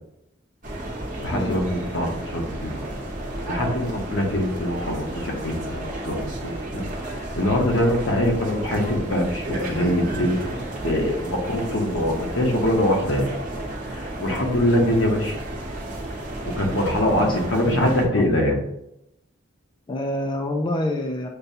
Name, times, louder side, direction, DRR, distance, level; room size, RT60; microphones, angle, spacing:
sound 1, 0.6-18.1, right 1 dB, 45° right, 0.9 m, -32 dB
voice 1, 1.2-3.1 3.5-6.8 7.3-13.3 13.9-15.4 16.4-18.6, left 1 dB, 70° left, 1 dB, 0.9 m, -23 dB
voice 2, 17.6-18.3 19.9-21.3, left 1 dB, 25° left, 2 dB, 0.3 m, -27 dB
6.6 x 2.2 x 2.7 m, 0.81 s
head